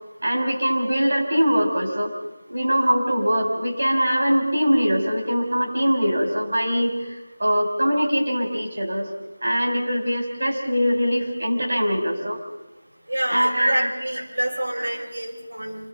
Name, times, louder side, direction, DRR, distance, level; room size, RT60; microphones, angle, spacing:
voice 1, 0.2-2.1 2.5-9.1 9.4-12.4 13.3-13.9 14.8-15.1, equal, 55° right, 2 dB, 4.5 m, -22 dB
voice 2, 13.1-15.9, right 1 dB, 80° right, -3 dB, 7.0 m, -27 dB
30.0 x 16.5 x 5.6 m, 1.1 s
figure-of-eight pair, 180°, 0 cm